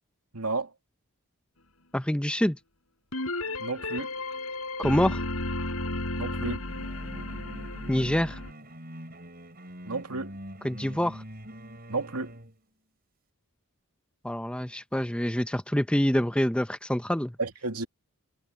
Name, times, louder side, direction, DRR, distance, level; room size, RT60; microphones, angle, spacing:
voice 1, 0.3-0.7 3.6-4.1 6.2-6.6 9.8-10.4 11.9-12.3 17.4-17.9, right 3 dB, 85° right, 2.5 m, -32 dB
voice 2, 1.9-2.6 4.8-5.2 7.9-8.4 10.6-11.2 14.2-17.3, equal, 5° left, 0.7 m, -26 dB
sound 1, 3.1-8.5, left 2 dB, 75° left, 4.4 m, -33 dB
sound 2, 6.7-12.5, equal, 40° right, 7.8 m, -44 dB
head